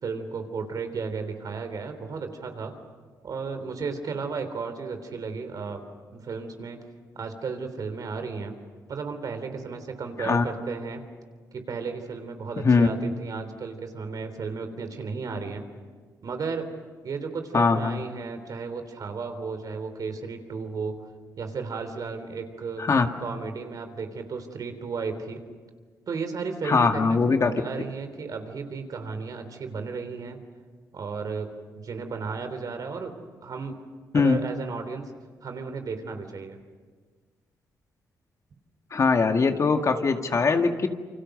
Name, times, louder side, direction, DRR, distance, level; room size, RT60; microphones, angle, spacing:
voice 1, 0.0-2.7 3.2-5.9 6.1-6.8 7.2-8.6 8.9-11.0 11.5-15.6 16.2-16.7 17.0-21.0 21.4-22.9 23.2-25.4 26.1-30.4 30.9-33.2 33.4-33.8 34.1-35.1 35.4-36.6 39.1-39.2, right 4 dB, 60° right, 7 dB, 3.6 m, -34 dB
voice 2, 17.5-18.0 22.8-23.1 26.6-27.5 34.1-34.4 38.9-40.9, left 4 dB, 50° left, 5 dB, 2.0 m, -21 dB
28.5 x 25.5 x 6.7 m, 1.5 s
cardioid pair, 65°, 7 cm